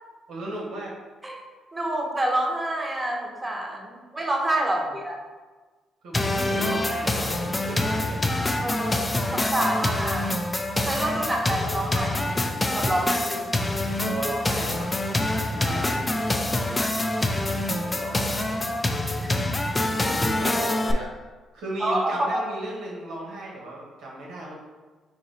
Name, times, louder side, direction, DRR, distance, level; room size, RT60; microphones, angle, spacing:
voice 1, 0.3-0.9 4.7-4.9 6.0-8.2 14.0-14.9 15.2-16.2 17.3-18.3 20.0-21.1 21.5-24.5, right 1 dB, 80° right, -3 dB, 1.2 m, -36 dB
voice 2, 1.7-5.2 8.6-10.4 10.8-12.4 12.7-13.6 15.3-15.6 19.2-19.5 21.8-22.4, right 1 dB, 20° right, 0 dB, 0.9 m, -28 dB
sound 1, 6.1-20.9, left 1 dB, 20° left, 0.4 m, -26 dB
3.8 x 2.9 x 4.2 m, 1.3 s
cardioid pair, 90°, 0 cm